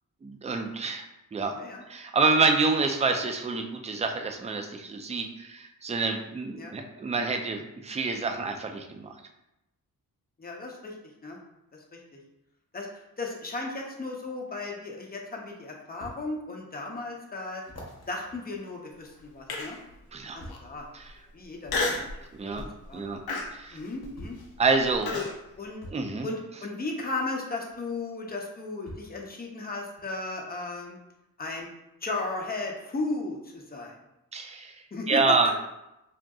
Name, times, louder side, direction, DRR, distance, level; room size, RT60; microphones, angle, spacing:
voice 1, 0.2-1.5 1.9-9.1 20.1-20.4 20.9-21.2 22.3-22.6 22.9-23.2 23.5-23.8 24.6-25.1 25.9-26.3 34.3-35.5, right 4 dB, 20° right, 4 dB, 0.3 m, -27 dB
voice 2, 10.4-10.9 11.2-11.4 11.7-12.2 12.7-17.6 18.1-19.8 20.3-20.9 21.3-22.3 22.9-23.0 23.7-24.4 25.2-25.3 25.6-25.8 26.2-31.0 31.4-31.7 32.0-33.9 34.9-35.2, left 3 dB, 25° left, 0 dB, 0.6 m, -35 dB
sound 1, 16.0-16.2 16.8-16.9 17.6-19.5 20.4-20.8 21.9-22.1 23.3-23.4 24.2-24.5 25.8-26.1 27.7-27.8 28.9-29.2 30.0-30.1, equal, 45° left, 0.9 m, -46 dB
Human voice, 19.5-19.9 20.5-20.6 21.7-22.1 22.6-22.9 23.3-25.3, left 3 dB, 75° left, 0.6 m, -31 dB
3.5 x 2.6 x 2.3 m, 0.91 s
wide cardioid pair, 85°, 37 cm